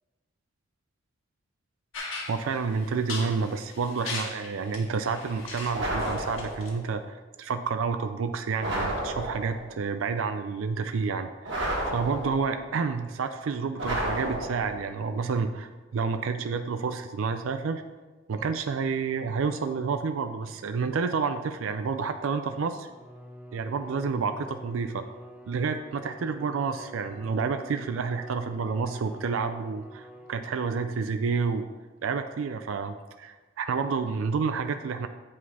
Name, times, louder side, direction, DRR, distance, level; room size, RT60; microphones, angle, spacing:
sound 1, 1.9-6.7, left 3 dB, 85° left, 1.6 m, -39 dB
voice 1, 2.3-11.6 11.9-17.8 18.3-22.9 23.5-25.0 25.5-31.7 32.0-35.1, right 5 dB, 85° right, 8 dB, 0.4 m, -29 dB
sound 2, 5.7-6.8 8.6-9.7 11.5-12.6 13.8-14.9, right 1 dB, 70° right, 1.9 m, -31 dB
Bowed string instrument, 22.8-31.1, equal, 10° right, 0.4 m, -47 dB
8.0 x 4.9 x 4.2 m, 1.2 s
head